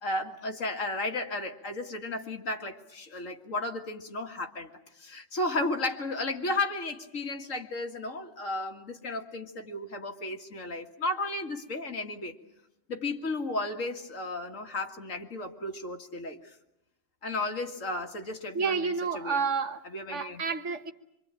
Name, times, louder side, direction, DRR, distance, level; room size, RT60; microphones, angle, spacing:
voice 1, 0.0-4.7 5.0-12.4 12.9-16.5 17.2-18.8 19.1-19.4 19.9-20.4, left 2 dB, 85° left, 2.4 m, -34 dB
voice 2, 18.5-19.8 20.1-20.9, right 5 dB, 65° right, 1.7 m, -30 dB
25.5 x 24.5 x 9.0 m
omnidirectional pair, 1.3 m